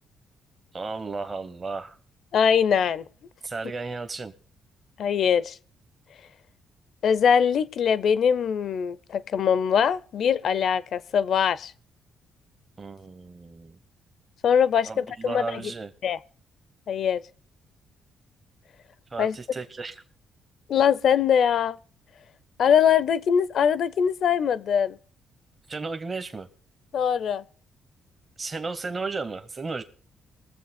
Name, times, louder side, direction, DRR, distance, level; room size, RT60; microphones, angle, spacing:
voice 1, 0.7-2.0 3.4-4.3 12.8-13.8 14.8-15.9 19.1-20.0 25.7-26.5 28.4-29.8, right 4 dB, 30° right, 0.7 m, -34 dB
voice 2, 2.3-3.0 5.0-5.6 7.0-11.7 14.4-15.6 16.0-16.2 16.9-17.2 19.2-19.4 20.7-21.8 22.6-25.0 26.9-27.4, left 7 dB, 65° left, 0.5 m, -22 dB
21.0 x 7.4 x 4.2 m
cardioid pair, 90°, 0 cm